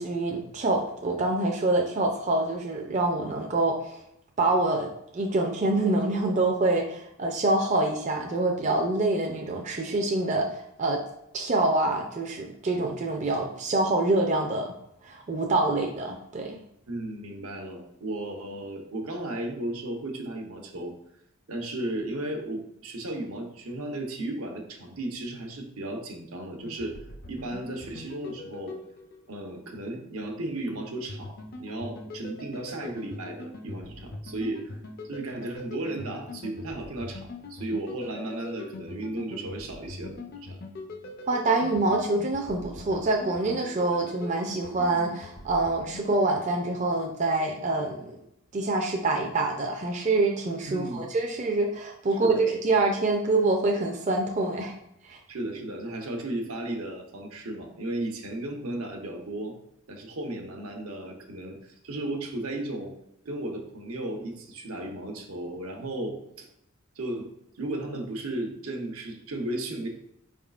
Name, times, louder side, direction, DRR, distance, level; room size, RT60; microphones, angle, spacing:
voice 1, 0.0-4.0 4.4-11.0 11.3-14.7 15.0-16.6 41.3-48.2 48.5-54.7 55.0-55.2, right 2 dB, 35° right, 1 dB, 0.4 m, -26 dB
voice 2, 16.9-20.9 21.5-27.0 27.3-28.8 29.3-34.8 35.1-40.6 50.7-51.0 52.2-52.4 55.3-59.6 59.9-62.9 63.2-66.5 66.9-67.3 67.5-69.9, right 1 dB, 85° right, 2 dB, 0.8 m, -35 dB
sound 1, 26.6-29.6 31.1-46.1, left 2 dB, 45° left, 0.4 m, -42 dB
4.8 x 3.6 x 2.4 m, 0.79 s
head